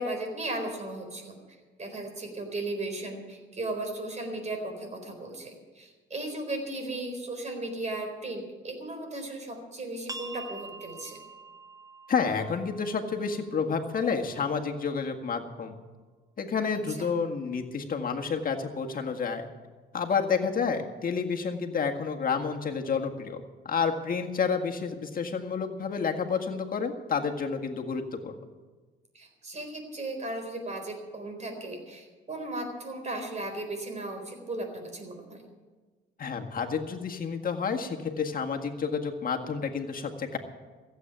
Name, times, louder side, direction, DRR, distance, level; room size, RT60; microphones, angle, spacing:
voice 1, 0.0-1.4 1.8-11.2 16.9-17.1 29.1-35.4, right 2 dB, 35° right, 5 dB, 4.2 m, -36 dB
sound 1, 10.1-15.5, right 3 dB, 20° right, 1.0 m, -47 dB
voice 2, 12.1-15.8 16.4-19.5 19.9-28.4 36.2-40.4, left 5 dB, 45° left, 3 dB, 1.8 m, -30 dB
15.5 x 8.3 x 9.1 m, 1.4 s
cardioid pair, 90°, 20 cm